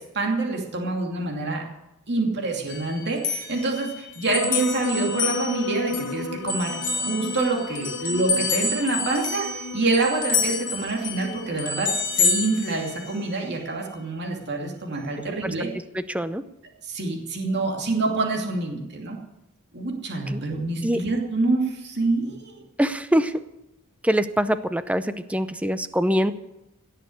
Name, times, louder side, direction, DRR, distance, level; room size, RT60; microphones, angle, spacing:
voice 1, 0.0-1.6 2.1-11.9 12.2-15.7 16.8-19.2 19.7-22.6, right 3 dB, 55° right, 0 dB, 2.7 m, -26 dB
sound 1, 2.7-6.1 6.5-13.4, left 4 dB, 40° left, 2.2 m, -28 dB
sound 2, 4.2-12.9, left 5 dB, 90° left, 0.9 m, -35 dB
voice 2, 15.9-16.4 20.3-20.4 20.8-21.0 22.8-23.4 24.0-26.3, equal, 5° right, 12 dB, 0.6 m, -24 dB
17.5 x 6.7 x 9.5 m, 0.94 s
head